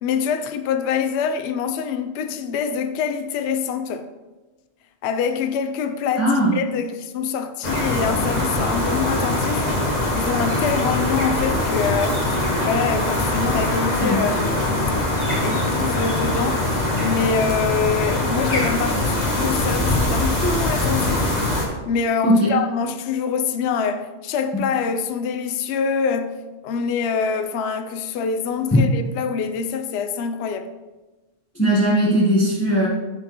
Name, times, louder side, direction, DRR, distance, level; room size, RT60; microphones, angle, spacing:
voice 1, 0.0-4.1 5.0-9.7 10.1-15.1 15.4-21.3 21.9-26.4 26.6-30.7, left 6 dB, 65° left, 0.7 m, -25 dB
voice 2, 6.2-6.5 14.0-14.2 22.2-22.5 28.7-28.9 31.5-32.9, equal, 10° left, 1.1 m, -18 dB
sound 1, 7.6-21.6, left 1 dB, 35° left, 1.3 m, -22 dB
12.0 x 4.4 x 3.0 m
omnidirectional pair, 1.4 m